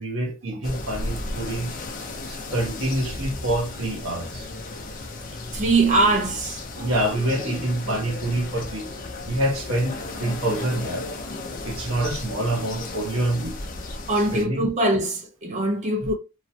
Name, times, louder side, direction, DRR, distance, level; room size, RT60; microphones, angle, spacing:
voice 1, 0.0-1.7 2.3-4.7 6.0-6.1 6.8-8.9 9.3-11.1 11.6-13.6 14.3-14.7 16.0-16.1, right 1 dB, 70° right, 1.0 m, -26 dB
sound 1, 0.6-14.4, left 2 dB, 40° left, 0.5 m, -34 dB
voice 2, 5.5-6.6 14.1-16.1, right 2 dB, 35° right, 0.5 m, -22 dB
3.0 x 2.1 x 2.7 m
head